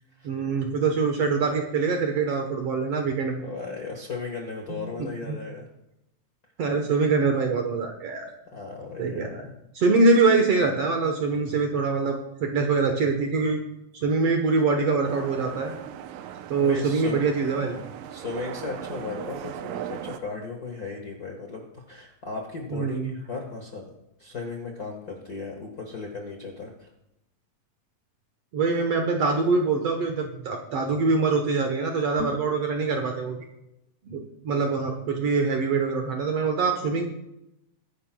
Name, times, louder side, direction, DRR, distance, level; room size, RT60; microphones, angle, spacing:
voice 1, 0.2-3.5 4.7-5.4 6.6-8.3 9.0-9.5 9.8-13.6 13.9-15.7 16.5-17.8 22.7-23.2 28.5-33.5 34.1-37.0, right 4 dB, 65° right, 3 dB, 1.7 m, -24 dB
voice 2, 3.4-5.7 8.5-9.6 16.6-17.2 18.1-23.9 24.2-26.9 32.2-32.3, left 4 dB, 45° left, 1 dB, 1.2 m, -36 dB
sound 1, 15.0-20.2, right 10 dB, 85° right, 2.3 m, -38 dB
21.5 x 10.5 x 2.3 m, 0.86 s
omnidirectional pair, 3.8 m